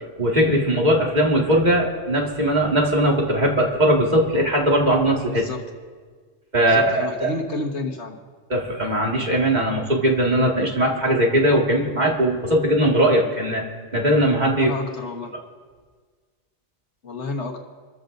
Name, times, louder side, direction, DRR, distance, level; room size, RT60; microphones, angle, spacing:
voice 1, 0.2-5.4 6.5-7.3 8.5-13.6 13.9-14.7, right 1 dB, 40° right, -2 dB, 2.1 m, -19 dB
voice 2, 6.6-8.2 14.6-15.3 17.0-17.6, left 3 dB, 70° left, 1 dB, 1.7 m, -30 dB
28.0 x 14.0 x 2.6 m, 1.5 s
omnidirectional pair, 1.2 m